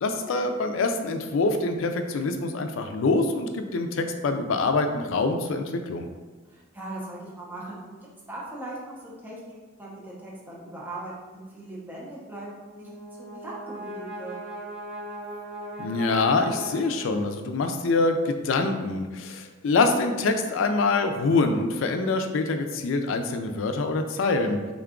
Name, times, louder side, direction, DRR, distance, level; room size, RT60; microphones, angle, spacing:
voice 1, 0.0-6.1 15.8-24.6, left 3 dB, 90° left, 6 dB, 0.4 m, -25 dB
voice 2, 6.5-7.9 8.3-12.5 12.8-12.9 13.2-14.4, right 2 dB, 10° right, -6 dB, 0.7 m, -39 dB
Brass instrument, 12.5-17.5, right 1 dB, 30° left, 0.6 m, -39 dB
3.7 x 2.3 x 3.6 m, 1.3 s
head